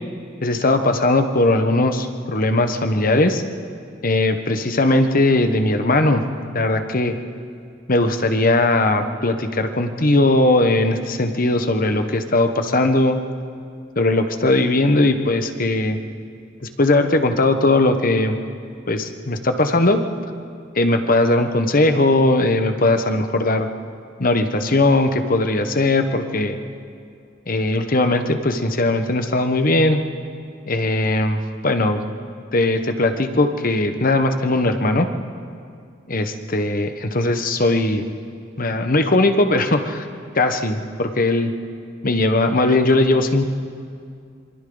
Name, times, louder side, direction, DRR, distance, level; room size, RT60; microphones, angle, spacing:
voice 1, 0.4-3.4 4.0-6.2 6.5-7.2 7.9-13.2 14.0-16.0 16.6-18.4 18.9-20.0 20.7-23.7 24.2-26.6 27.5-30.0 30.7-32.0 32.5-35.1 36.1-38.0 38.6-40.1 40.3-41.5 42.0-43.5, left 2 dB, 45° left, 7 dB, 1.2 m, -19 dB
26.5 x 25.0 x 4.0 m, 2.3 s
head